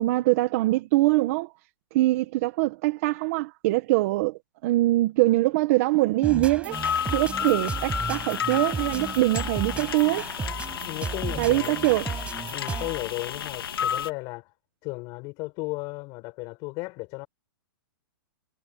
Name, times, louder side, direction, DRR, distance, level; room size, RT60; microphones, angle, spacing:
voice 1, 0.0-1.5 1.9-6.8 7.1-10.3 11.4-12.1, right 18 dB, 40° right, 1.6 m, -23 dB
sound 1, 6.2-13.1, right 5 dB, 10° right, 6.0 m, -34 dB
sound 2, 6.7-14.1, left 8 dB, 90° left, 2.8 m, -32 dB
voice 2, 10.8-11.8 12.5-14.5 14.8-17.3, left 26 dB, 30° left, 6.6 m, -35 dB
hypercardioid pair, 155°, 12 cm